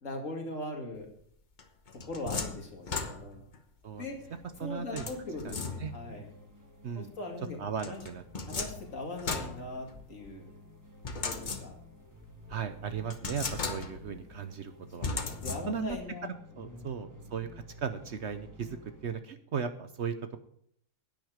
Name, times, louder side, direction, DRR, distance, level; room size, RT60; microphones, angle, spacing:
voice 1, 0.0-1.1 2.1-3.4 4.0-4.2 4.6-6.3 6.9-7.6 7.8-8.0 8.4-10.4 11.1-11.7 15.2-16.3 16.7-16.9, left 2 dB, 60° left, 1 dB, 2.6 m, -40 dB
sound 1, 1.6-3.6 5.0-6.2 7.8-10.3 11.0-12.0 12.5-12.6 13.1-14.2 15.0-16.0, left 4 dB, 35° left, 1.0 m, -37 dB
sound 2, 3.9-19.1, equal, 15° right, 1.2 m, -53 dB
voice 2, 4.6-5.1 5.4-5.5 5.8-5.9 6.8-7.1 7.6-8.2 12.5-15.1 15.7-16.0 16.2-20.2, right 6 dB, 55° right, 9 dB, 1.0 m, -37 dB
10.5 x 9.4 x 5.0 m, 0.66 s
omnidirectional pair, 1.5 m